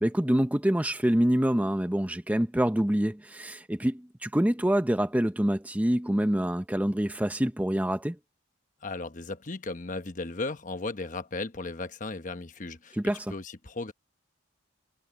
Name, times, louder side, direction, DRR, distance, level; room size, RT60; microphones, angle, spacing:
voice 1, 0.0-8.2 13.0-13.3, equal, 10° right, 0.6 m, -26 dB
voice 2, 8.8-13.0 13.3-13.9, left 3 dB, 40° left, 1.1 m, -36 dB
head